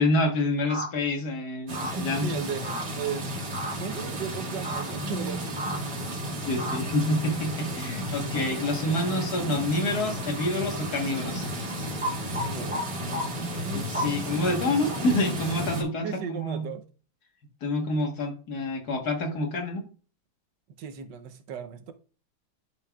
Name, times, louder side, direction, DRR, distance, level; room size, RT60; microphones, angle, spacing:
voice 1, 0.0-2.3 4.0-4.1 6.4-11.4 13.7-16.7 17.6-19.8, left 1 dB, 60° left, 1.8 m, -27 dB
sound 1, 0.7-0.9 1.7-1.9 2.6-2.8 3.5-3.7 4.6-4.8 5.6-5.8 6.6-6.8 12.0-12.8 13.1-13.2 13.9-14.1 14.9-15.0, equal, 5° right, 1.2 m, -31 dB
sound 2, 1.7-15.8, equal, 60° right, 2.2 m, -33 dB
voice 2, 2.2-3.3 3.8-6.2 12.2-13.1 16.0-16.8 20.8-21.9, right 7 dB, 80° right, 1.4 m, -36 dB
11.0 x 5.7 x 2.3 m
omnidirectional pair, 1.9 m